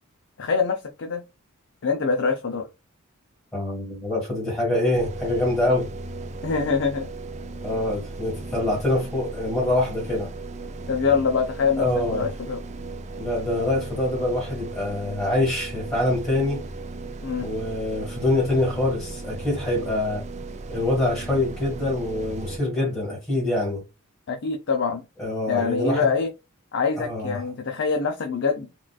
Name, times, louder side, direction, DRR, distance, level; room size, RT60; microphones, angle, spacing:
voice 1, 0.4-1.2 1.8-2.7 6.4-7.1 10.9-12.6 17.2-17.5 24.3-25.0 25.5-26.3 26.7-28.7, left 5 dB, 55° left, 0.5 m, -24 dB
voice 2, 3.5-5.9 7.6-10.3 11.8-12.3 13.2-16.6 17.4-20.2 20.7-23.8 25.2-26.1 27.0-27.4, left 1 dB, 15° left, 1.7 m, -25 dB
sound 1, 4.9-22.6, right 2 dB, 30° right, 0.4 m, -36 dB
3.7 x 2.4 x 2.3 m
head